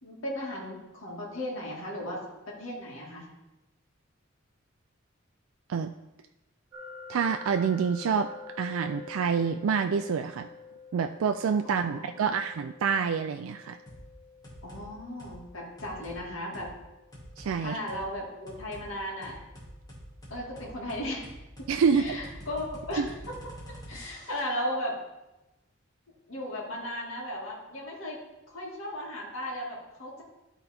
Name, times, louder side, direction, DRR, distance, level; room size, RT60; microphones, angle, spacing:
voice 1, 0.0-3.3 11.6-12.4 14.6-16.7 17.6-19.4 20.3-21.3 21.9-23.3 23.9-25.0 26.3-30.2, left 1 dB, 75° left, -4 dB, 2.1 m, -36 dB
sound 1, 6.7-19.6, left 4 dB, 20° right, 2.4 m, -49 dB
voice 2, 7.1-8.3 8.6-10.5 10.9-13.8 17.4-17.8 21.7-22.2 23.0-23.1, right 6 dB, 85° right, 7 dB, 0.4 m, -27 dB
sound 2, 13.9-14.0 14.4-14.8 15.2-15.4 15.8-16.2 16.5-16.7 17.1-17.5 17.9-18.0 18.5-18.9 19.2-24.5, equal, 20° left, 2.4 m, -46 dB
12.0 x 4.0 x 4.3 m, 1.0 s
head